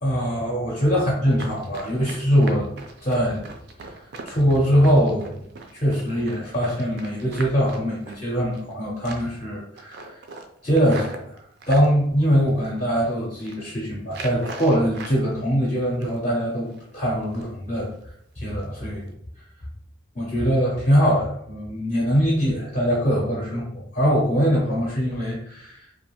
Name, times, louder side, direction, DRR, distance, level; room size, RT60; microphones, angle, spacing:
voice 1, 0.0-2.7 3.0-3.5 3.8-4.0 4.3-5.4 5.7-10.2 10.6-11.4 11.7-17.9 18.4-19.1 20.2-25.9, equal, 35° left, -4 dB, 0.5 m, -22 dB
Run, 1.3-8.7 9.0-9.4 9.8-11.9 12.5-13.0 13.3-13.6 14.1-15.2 15.5-16.3 16.7-16.8 17.2-17.6 17.9-18.0 18.5-18.6 19.0-19.1, right 3 dB, 55° right, 0.3 m, -40 dB
2.3 x 2.2 x 2.9 m, 0.71 s
head